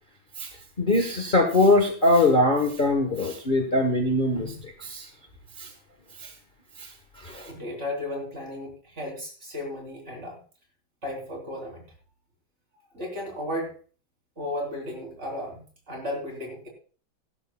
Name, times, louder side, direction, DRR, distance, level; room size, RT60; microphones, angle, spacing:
voice 1, 0.8-5.1 5.6-5.7 6.2-6.3 6.8-6.9 7.2-7.5, left 2 dB, 30° left, 3 dB, 1.2 m, -22 dB
voice 2, 7.5-10.4 11.0-11.9 12.9-13.8 14.4-16.7, left 1 dB, 35° right, 1 dB, 3.9 m, -34 dB
16.5 x 12.0 x 2.3 m, 0.39 s
omnidirectional pair, 2.2 m